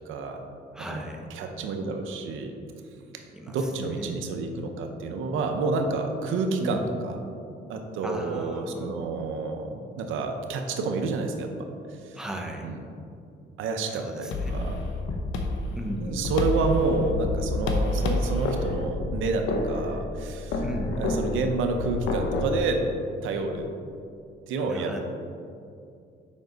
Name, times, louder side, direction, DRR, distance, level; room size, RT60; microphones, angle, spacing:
voice 1, 0.1-0.4 0.9-1.0 1.3-2.6 3.5-7.2 7.7-12.2 12.6-12.8 13.6-14.8 16.0-20.6 21.0-22.8 23.2-23.7 24.5-25.0, right 3 dB, 85° right, 5 dB, 0.7 m, -29 dB
voice 2, 0.7-1.3 3.3-4.3 6.6-6.9 8.0-9.0 12.1-12.8 13.9-14.6 15.8-16.3 20.6-21.0 24.7-25.0, right 1 dB, 5° right, 1 dB, 0.9 m, -36 dB
sound 1, 14.3-22.6, left 2 dB, 85° left, 0.8 m, -29 dB
7.3 x 5.3 x 3.9 m, 2.5 s
cardioid pair, 90°, 20 cm